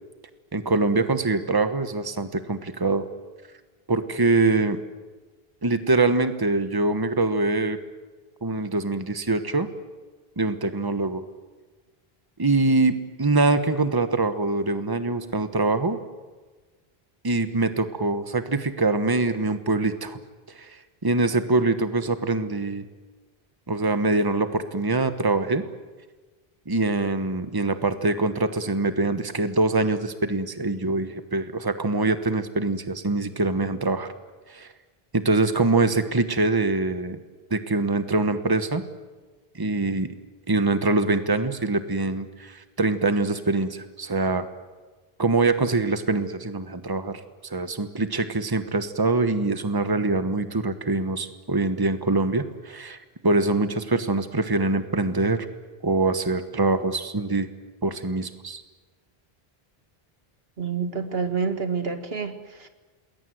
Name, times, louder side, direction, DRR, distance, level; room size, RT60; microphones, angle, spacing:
voice 1, 0.5-3.1 3.9-4.8 5.6-7.8 8.4-9.7 10.4-11.2 12.4-16.0 17.2-20.2 20.5-22.9 23.7-25.6 26.7-34.1 34.5-34.7 35.1-37.2 37.5-38.8 39.5-40.1 40.5-44.5 45.2-55.5 55.8-57.5 57.8-58.6, right 3 dB, 20° right, 10 dB, 1.2 m, -24 dB
voice 2, 60.6-62.7, right 5 dB, 75° right, 7 dB, 2.0 m, -28 dB
28.0 x 21.0 x 7.9 m, 1.3 s
omnidirectional pair, 1.0 m